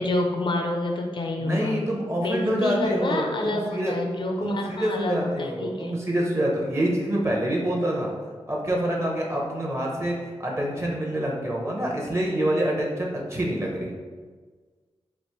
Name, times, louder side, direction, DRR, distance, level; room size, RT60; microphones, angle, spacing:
voice 1, 0.0-1.8 2.2-6.0, left 2 dB, 50° left, 1 dB, 0.5 m, -28 dB
voice 2, 1.4-3.9 4.4-8.1 8.5-13.9, right 1 dB, 25° right, -2 dB, 0.9 m, -26 dB
3.2 x 2.5 x 4.4 m, 1.5 s
wide cardioid pair, 85°, 11 cm